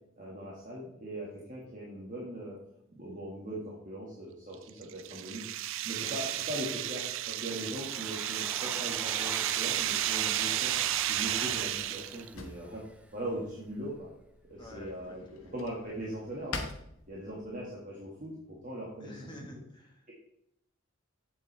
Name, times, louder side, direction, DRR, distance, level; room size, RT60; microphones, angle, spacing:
voice 1, 0.2-2.6 2.9-10.7 11.1-12.9 13.1-14.1 14.5-15.2 15.5-16.6 17.1-19.2, right 1 dB, 40° right, -5 dB, 1.8 m, -40 dB
sound 1, 4.5-12.3, right 13 dB, 70° right, 0.4 m, -32 dB
Domestic sounds home sounds, 7.5-13.1, right 1 dB, 5° right, 0.4 m, -44 dB
Drawer open or close, 10.0-17.6, left 3 dB, 85° left, 1.3 m, -47 dB
voice 2, 14.6-15.2 19.0-20.1, left 1 dB, 20° left, 1 dB, 1.5 m, -49 dB
8.4 x 7.9 x 3.3 m, 0.77 s
head